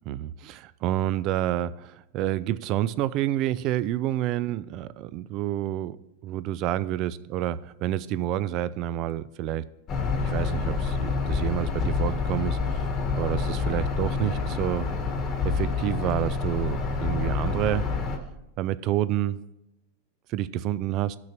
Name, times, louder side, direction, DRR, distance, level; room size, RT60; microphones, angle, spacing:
voice 1, 0.1-9.6 10.1-12.9 13.1-14.9 15.4-17.9 18.6-19.4 20.3-21.2, right 13 dB, 45° right, 0.4 m, -29 dB
sound 1, 9.9-18.2, left 4 dB, 30° left, 1.1 m, -27 dB
15.0 x 6.1 x 3.0 m
supercardioid pair, 130°, 0 cm